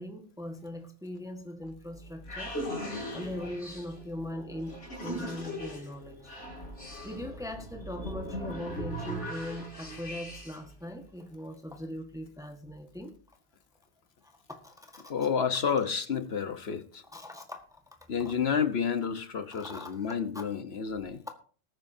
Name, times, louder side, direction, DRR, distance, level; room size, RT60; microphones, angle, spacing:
voice 1, 0.0-2.5 3.1-6.3 7.0-13.1 14.5-15.1 17.1-17.6 18.2-18.3 19.5-20.5, left 1 dB, 5° right, 1.4 m, -40 dB
sound 1, 1.7-10.7, equal, 80° left, 4.0 m, -39 dB
voice 2, 15.1-17.0 18.1-21.2, left 6 dB, 60° left, 1.3 m, -30 dB
20.0 x 9.1 x 2.7 m
omnidirectional pair, 1.2 m